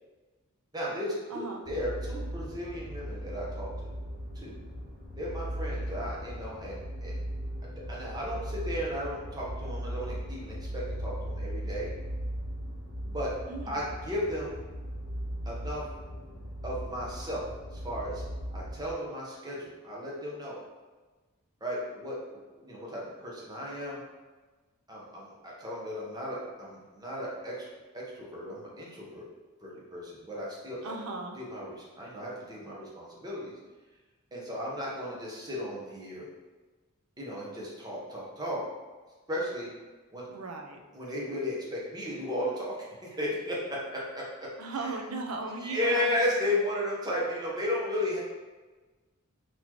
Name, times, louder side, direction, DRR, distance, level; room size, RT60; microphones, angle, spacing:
voice 1, 0.7-3.7 4.3-4.5 5.2-7.2 7.9-11.9 13.0-13.3 13.7-14.5 15.5-15.8 16.6-17.4 17.7-18.2 18.5-20.6 21.6-24.0 24.9-27.7 27.9-29.3 29.6-30.9 31.4-33.5 34.3-36.3 37.2-38.6 39.3-39.7 40.1-40.3 40.9-42.8 43.0-44.5 45.6-48.2, left 1 dB, 20° right, -5 dB, 0.8 m, -34 dB
voice 2, 1.3-1.6 13.5-13.8 30.8-31.4 40.3-40.8 44.6-46.1, right 3 dB, 90° right, 2 dB, 0.5 m, -36 dB
sound 1, 1.6-18.9, equal, 40° right, 1.4 m, -38 dB
4.0 x 3.0 x 2.9 m, 1.3 s
head